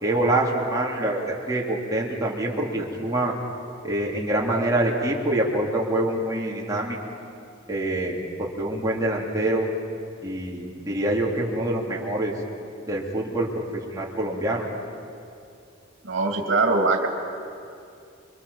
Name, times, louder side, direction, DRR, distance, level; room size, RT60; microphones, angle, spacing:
voice 1, 0.0-3.3 3.8-7.0 7.7-9.7 10.2-12.3 12.9-14.7, right 1 dB, 20° right, -3 dB, 3.5 m, -25 dB
voice 2, 16.0-17.1, right 3 dB, 70° right, 3 dB, 2.6 m, -22 dB
28.5 x 24.0 x 7.2 m, 2.5 s
head